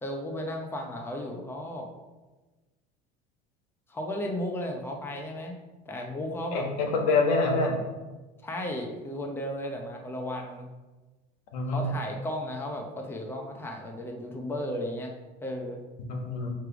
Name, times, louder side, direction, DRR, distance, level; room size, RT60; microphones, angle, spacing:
voice 1, 0.0-1.9 3.9-5.6 5.9-6.7 8.4-10.7 11.7-15.1 15.4-15.8, left 1 dB, 10° left, 2 dB, 0.7 m, -34 dB
voice 2, 6.5-7.8 11.5-11.9 16.1-16.5, left 3 dB, 85° left, 2 dB, 1.3 m, -26 dB
6.6 x 3.3 x 4.9 m, 1.2 s
cardioid pair, 130°, 20 cm